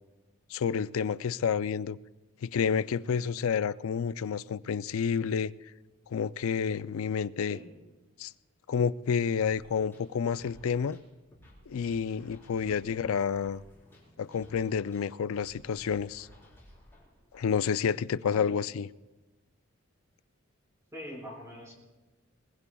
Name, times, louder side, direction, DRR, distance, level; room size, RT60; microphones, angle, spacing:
voice 1, 0.5-2.0 2.4-5.5 6.1-7.6 8.2-8.3 8.7-11.0 11.7-13.6 14.2-16.3 17.3-18.9, left 6 dB, 70° left, 0.4 m, -29 dB
sound 1, 9.4-17.4, left 1 dB, 10° left, 4.2 m, -56 dB
voice 2, 12.5-12.8 18.2-18.6 20.9-21.7, equal, 15° right, 5.0 m, -44 dB
22.5 x 21.0 x 2.3 m
head